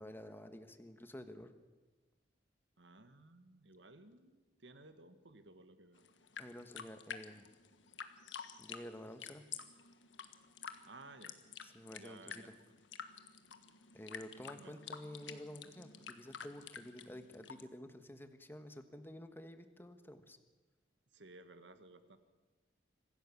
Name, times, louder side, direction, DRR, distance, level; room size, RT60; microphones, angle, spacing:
voice 1, 0.0-1.5 6.4-7.5 8.6-9.4 11.6-12.5 13.9-20.4, left 1 dB, 10° left, 8 dB, 1.3 m, -50 dB
voice 2, 2.8-6.0 10.9-11.3 12.0-12.5 14.6-14.8 21.1-22.2, right 2 dB, 75° right, 9 dB, 1.7 m, -57 dB
sound 1, 6.0-17.6, left 7 dB, 85° left, 1.5 m, -50 dB
25.0 x 16.0 x 7.2 m, 1.2 s
head